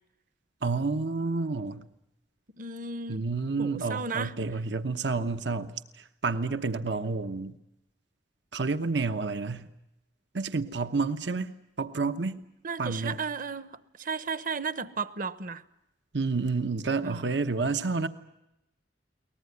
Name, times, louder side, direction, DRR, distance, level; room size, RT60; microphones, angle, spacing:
voice 1, 0.6-1.8 3.1-5.7 6.2-7.5 8.5-9.7 10.3-11.5 11.8-12.4 12.8-13.2 16.1-18.1, right 4 dB, 75° right, 1.0 m, -29 dB
voice 2, 2.6-3.3 3.6-4.3 12.3-15.6 17.0-17.3, right 5 dB, 50° right, 1.0 m, -35 dB
23.0 x 19.5 x 9.4 m
head